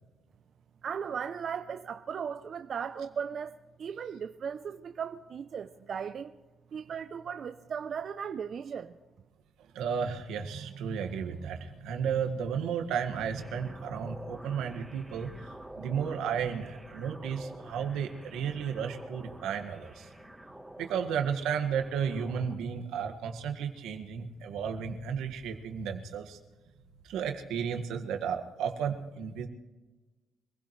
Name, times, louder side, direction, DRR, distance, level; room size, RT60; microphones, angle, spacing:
voice 1, 0.8-6.3 6.7-8.9, right 7 dB, 55° right, 0.6 m, -37 dB
voice 2, 9.7-20.1 20.8-26.4 27.0-29.5, right 7 dB, 90° right, 1.8 m, -33 dB
sound 1, 13.4-22.6, right 1 dB, 5° right, 1.2 m, -48 dB
25.5 x 16.5 x 3.3 m
cardioid pair, 90°, 0 cm